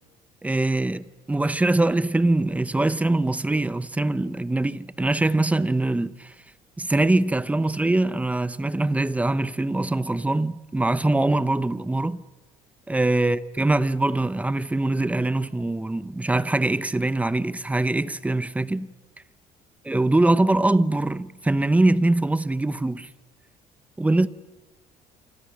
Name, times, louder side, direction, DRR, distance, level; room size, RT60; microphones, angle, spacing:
voice 1, 0.4-6.3 6.8-12.2 12.9-18.9 19.9-23.1 24.0-24.3, right 2 dB, 10° right, 0.8 m, -23 dB
28.0 x 25.0 x 6.5 m
cardioid pair, 125°, 15 cm